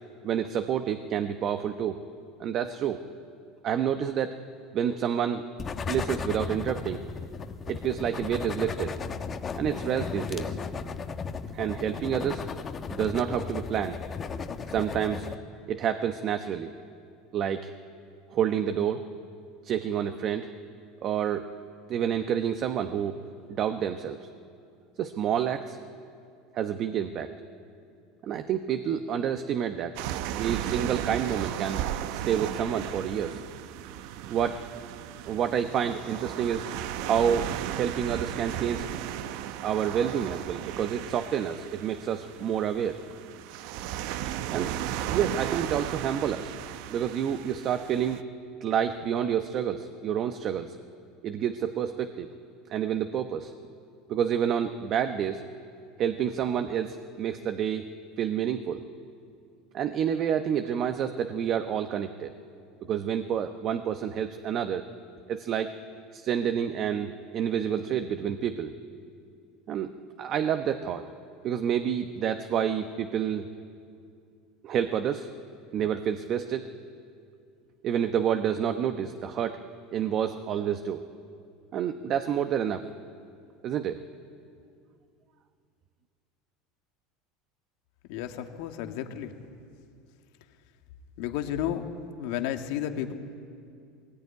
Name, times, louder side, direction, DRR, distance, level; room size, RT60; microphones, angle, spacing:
voice 1, 0.2-2.0 2.4-3.1 3.6-4.4 4.7-5.4 5.9-7.0 7.7-9.0 9.6-10.6 11.5-12.5 12.9-14.0 14.7-15.3 15.7-16.7 17.3-17.7 18.3-19.1 19.6-20.5 21.0-21.5 21.9-23.2 23.5-24.3 25.0-25.8 26.5-27.3 28.2-29.9 30.4-31.8 32.1-33.4 34.3-34.7 35.2-36.7 37.0-38.9 39.6-43.0 44.5-44.7 45.1-46.5 46.9-48.2 48.6-50.8 51.2-52.3 52.7-53.5 54.1-55.4 56.0-57.9 58.2-58.8 59.7-62.3 62.9-64.9 65.3-65.7 66.1-68.7 69.7-69.9 70.2-71.0 71.4-73.5 74.6-75.3 75.7-76.7 77.8-79.6 79.9-81.0 81.7-82.8 83.6-84.0, right 9 dB, 45° right, 8 dB, 1.0 m, -28 dB
sound 1, 5.6-15.4, left 5 dB, 30° left, 1.3 m, -35 dB
sound 2, 30.0-48.2, right 11 dB, 70° right, 0.8 m, -35 dB
voice 2, 88.1-89.3 91.2-91.9 92.2-93.1, left 10 dB, 75° left, 5 dB, 1.9 m, -32 dB
20.0 x 18.5 x 9.6 m, 2.4 s
supercardioid pair, 115°, 0 cm